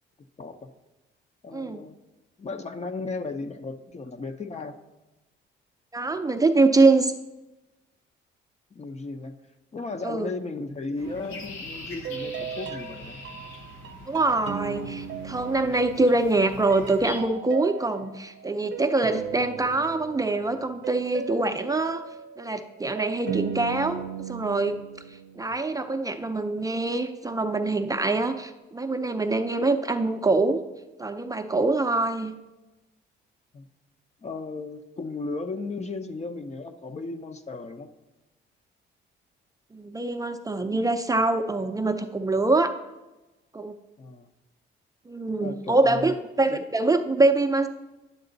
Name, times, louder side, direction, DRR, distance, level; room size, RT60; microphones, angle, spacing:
voice 1, 0.4-0.7 1.4-2.0 2.4-4.7 8.7-9.3 9.7-13.2 25.5-25.6 33.5-33.7 34.2-37.9 44.0-44.3 45.4-46.1 46.5-46.6, left 3 dB, 35° left, 8 dB, 0.7 m, -35 dB
voice 2, 5.9-7.1 10.0-10.3 14.1-22.0 22.4-24.8 25.4-30.6 31.0-32.3 39.7-42.7 43.5-43.7 45.1-47.7, right 2 dB, 15° right, 6 dB, 0.5 m, -24 dB
sound 1, 11.0-17.2, left 2 dB, 90° left, 1.2 m, -42 dB
sound 2, 11.0-11.6 12.0-16.6 16.9-25.6, right 8 dB, 65° right, 0.7 m, -37 dB
10.5 x 6.8 x 3.9 m, 1.0 s
cardioid pair, 90°, 20 cm